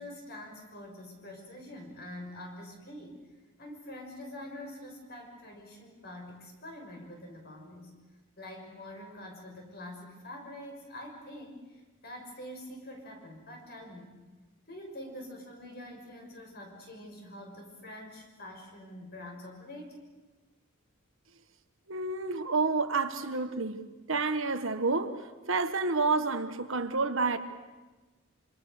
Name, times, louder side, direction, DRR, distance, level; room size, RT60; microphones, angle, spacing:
voice 1, 0.0-3.2 3.6-8.0 8.4-11.6 12.0-14.2 14.7-20.0, left 1 dB, 45° left, 6.3 m, -45 dB
voice 2, 21.9-23.8 24.1-27.4, right 4 dB, 65° right, 1.5 m, -29 dB
26.5 x 26.0 x 6.7 m
head